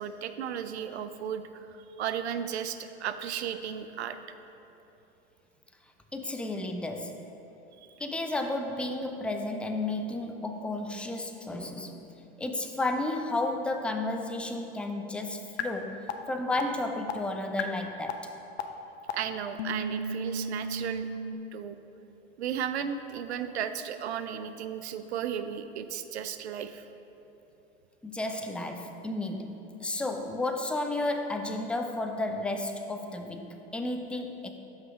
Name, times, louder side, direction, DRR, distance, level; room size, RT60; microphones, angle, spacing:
voice 1, 0.0-1.7 2.0-4.2 19.1-21.1 21.5-21.8 22.4-26.9, right 8 dB, 85° right, 10 dB, 0.5 m, -34 dB
voice 2, 6.1-7.3 8.0-12.1 12.4-18.3 28.0-34.5, left 2 dB, 5° left, 5 dB, 0.3 m, -32 dB
sound 1, 15.6-15.7 16.1-16.2 16.6-16.7 17.1-17.2 17.6-17.7 18.1-18.2 18.6-18.7 19.1-19.2 19.6-21.3, left 1 dB, 85° left, 0.6 m, -32 dB
5.9 x 5.5 x 5.0 m, 3.0 s
hypercardioid pair, 90°, 32 cm